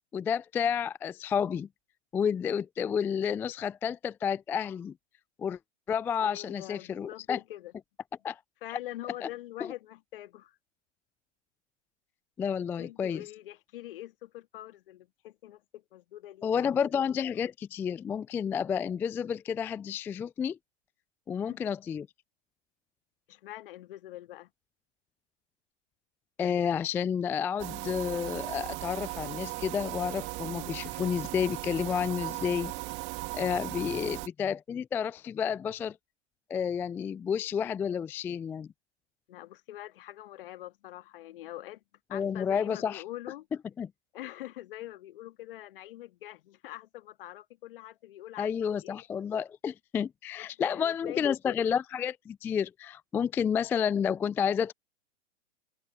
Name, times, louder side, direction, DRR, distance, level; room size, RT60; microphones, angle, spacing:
voice 1, 0.1-1.7 2.1-4.9 5.4-5.6 5.9-7.4 8.2-8.4 8.7-8.8 9.2-9.3 9.6-9.7 12.4-13.2 16.4-20.6 21.3-22.1 26.4-32.7 33.3-36.0 36.5-38.7 42.1-43.0 43.8-43.9 48.4-54.7, left 7 dB, 5° left, 0.4 m, -30 dB
voice 2, 6.2-7.7 8.6-10.6 12.8-16.7 21.3-21.6 23.3-24.5 33.8-34.2 39.3-41.8 42.1-43.5 44.1-49.0 50.4-51.4, left 15 dB, 50° left, 1.9 m, -44 dB
sound 1, 27.6-34.3, right 25 dB, 30° right, 1.8 m, -37 dB
open air
figure-of-eight pair, 115°, 36 cm